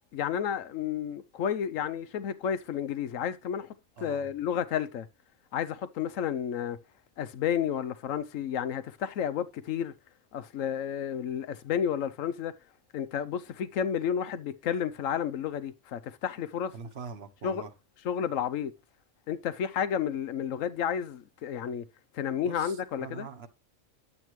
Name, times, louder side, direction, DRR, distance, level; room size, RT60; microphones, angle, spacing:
voice 1, 0.1-3.7 4.0-5.1 5.5-6.8 7.2-9.9 10.3-12.5 12.9-16.7 17.4-17.6 18.0-18.7 19.3-21.8 22.1-23.3, left 8 dB, 85° left, 1.1 m, -31 dB
voice 2, 4.0-4.3 16.7-17.7 22.4-23.5, right 5 dB, 55° right, 1.2 m, -43 dB
11.0 x 8.1 x 3.1 m
omnidirectional pair, 1.3 m